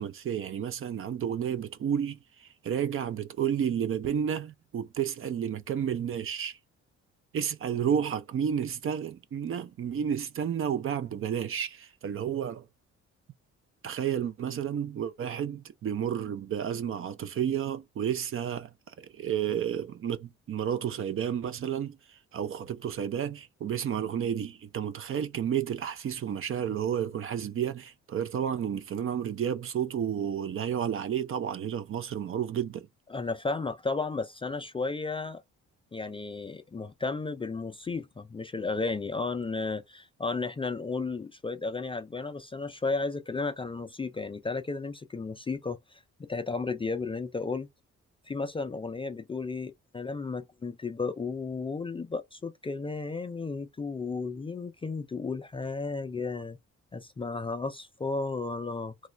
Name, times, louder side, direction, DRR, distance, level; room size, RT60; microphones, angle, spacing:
voice 1, 0.0-6.6 7.3-12.6 13.8-22.0 22.3-32.9, right 8 dB, 45° right, 0.5 m, -31 dB
voice 2, 33.1-35.4 35.9-47.7 48.3-56.6 56.9-58.9, left 3 dB, 20° left, 0.3 m, -33 dB
3.1 x 2.3 x 3.1 m
cardioid pair, 90°, 30 cm